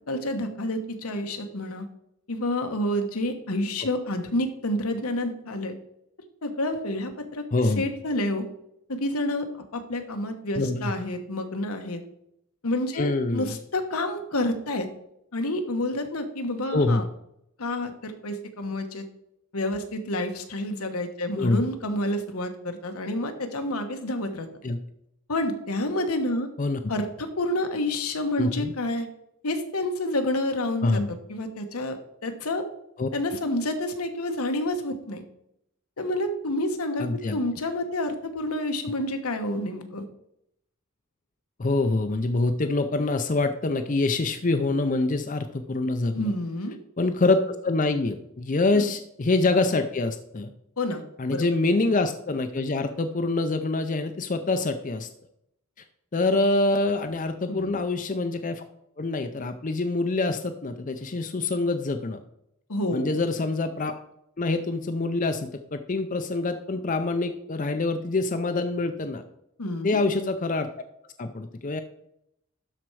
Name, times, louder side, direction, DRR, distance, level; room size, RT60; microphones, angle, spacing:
voice 1, 0.1-1.8 2.3-5.7 6.4-7.4 7.7-8.5 8.9-9.5 9.7-12.0 12.6-14.9 15.3-17.0 17.6-19.1 19.5-24.5 25.3-26.5 26.9-29.1 29.4-31.0 31.3-32.6 33.1-35.2 36.0-37.1 37.3-40.0 46.1-46.8 48.7-48.9 50.8-51.0 51.3-51.5 57.5-57.8 62.7-63.2 69.6-70.0, left 1 dB, 85° left, 6 dB, 1.2 m, -29 dB
voice 2, 7.5-7.8 10.6-10.9 13.0-13.6 16.7-17.0 21.3-21.6 24.6-24.8 26.6-26.8 28.4-28.7 30.8-31.1 33.0-33.1 37.0-37.4 41.6-46.3 47.0-50.5 51.2-55.1 56.1-58.6 59.0-62.2 62.9-63.9 64.4-69.2 69.8-70.9 71.2-71.8, left 2 dB, 35° left, 8 dB, 0.5 m, -25 dB
12.0 x 4.4 x 4.8 m, 0.77 s
head